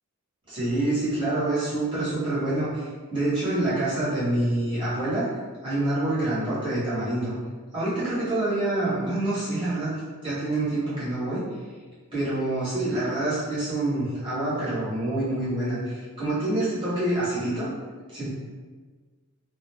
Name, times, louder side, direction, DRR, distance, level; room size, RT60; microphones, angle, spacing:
voice 1, 0.5-5.3 5.6-7.3 7.7-9.9 10.2-11.4 12.1-17.7 18.1-18.3, right 1 dB, 25° right, -12 dB, 0.9 m, -26 dB
2.3 x 2.0 x 3.3 m, 1.4 s
head